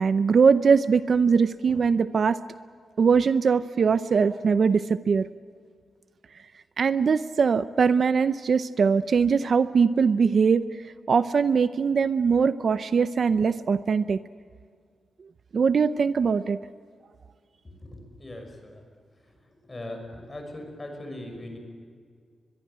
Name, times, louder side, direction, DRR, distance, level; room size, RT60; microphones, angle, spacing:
voice 1, 0.0-2.4 3.0-5.3 6.8-10.6 11.1-14.2 15.5-16.6, right 5 dB, 50° right, 13 dB, 0.6 m, -21 dB
voice 2, 17.6-18.8 19.6-21.6, left 1 dB, 20° left, 4 dB, 5.8 m, -40 dB
23.0 x 22.0 x 8.8 m, 2.1 s
wide cardioid pair, 140°, 0 cm